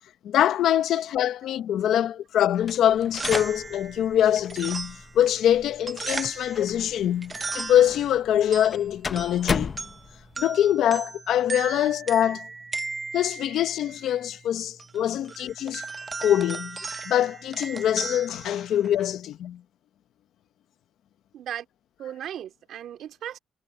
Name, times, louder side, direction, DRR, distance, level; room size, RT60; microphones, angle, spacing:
voice 1, 0.2-9.7 10.4-12.5 13.1-15.8 16.2-19.6, left 11 dB, 70° left, 0.8 m, -24 dB
sound 1, 2.6-10.4, left 5 dB, 30° left, 0.6 m, -36 dB
sound 2, 2.9-19.2, right 4 dB, 20° right, 0.5 m, -37 dB
voice 2, 21.3-21.7 22.0-23.4, right 10 dB, 65° right, 2.7 m, -36 dB
cardioid pair, 160°, 0 cm